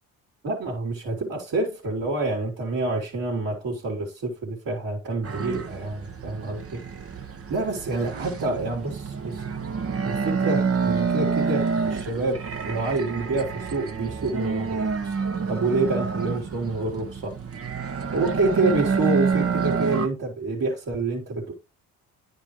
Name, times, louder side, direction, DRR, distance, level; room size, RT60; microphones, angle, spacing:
voice 1, 0.4-6.8 7.5-9.4 10.0-15.2 15.5-17.4 18.1-21.5, right 3 dB, 60° right, 3.1 m, -27 dB
sound 1, 5.2-20.1, right 5 dB, 40° right, 1.2 m, -28 dB
9.9 x 5.3 x 3.0 m
supercardioid pair, 70°, 37 cm